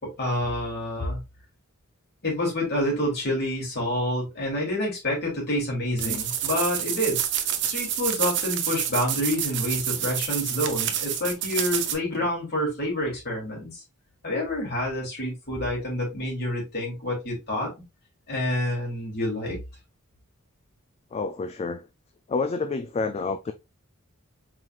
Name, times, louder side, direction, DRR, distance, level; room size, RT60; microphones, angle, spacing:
voice 1, 0.0-1.2 2.2-7.2 7.6-13.8 14.2-17.7 18.3-19.6, left 1 dB, 50° left, 2.7 m, -28 dB
sound 1, 6.0-11.9, right 10 dB, 55° right, 0.7 m, -28 dB
voice 2, 21.1-21.9 22.3-23.5, left 4 dB, 30° left, 0.3 m, -29 dB
4.7 x 3.8 x 2.4 m
head